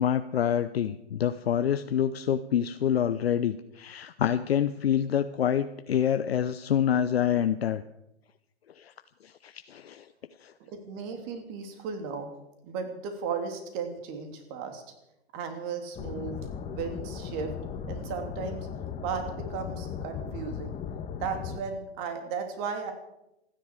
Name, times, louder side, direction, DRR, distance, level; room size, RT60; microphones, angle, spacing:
voice 1, 0.0-7.8 8.8-8.9 9.4-10.0 10.4-10.5, left 9 dB, 65° left, 10 dB, 0.8 m, -27 dB
voice 2, 10.7-12.3 12.6-14.8 15.3-16.4 16.7-17.5 17.9-18.7 19.0-20.8 21.2-22.9, right 6 dB, 35° right, 6 dB, 3.3 m, -35 dB
sound 1, 15.9-21.6, left 7 dB, 20° left, 1.7 m, -37 dB
27.5 x 10.5 x 4.9 m, 0.89 s
figure-of-eight pair, 115°, 34 cm